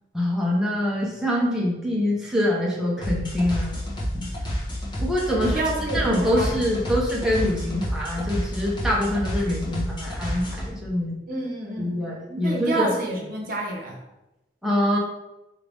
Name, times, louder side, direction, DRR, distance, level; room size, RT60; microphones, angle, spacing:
voice 1, 0.1-3.8 4.1-4.3 5.0-5.6 5.9-11.2 11.8-12.9 14.6-15.0, left 1 dB, 5° right, -5 dB, 0.9 m, -24 dB
sound 1, 3.0-10.7, equal, 25° left, 1.1 m, -29 dB
voice 2, 5.4-6.9 11.3-12.0 12.4-14.0, right 1 dB, 50° right, 0 dB, 1.0 m, -29 dB
4.9 x 2.8 x 3.5 m, 0.98 s
head